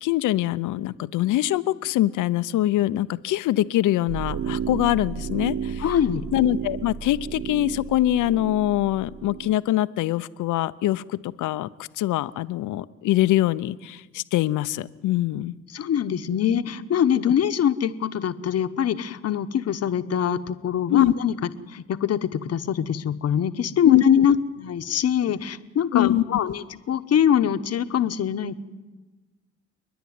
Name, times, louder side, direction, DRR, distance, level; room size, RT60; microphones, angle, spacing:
voice 1, 0.0-5.8 6.3-11.7 12.0-15.6 20.9-21.1 23.8-24.0 25.9-26.2, left 14 dB, 80° left, 16 dB, 0.7 m, -23 dB
sound 1, 4.1-9.6, right 7 dB, 50° right, 0.8 m, -33 dB
voice 2, 5.8-6.2 15.7-21.4 21.7-28.6, left 9 dB, 55° left, 11 dB, 1.0 m, -23 dB
30.0 x 10.5 x 9.5 m, 1.2 s
cardioid pair, 90°, 30 cm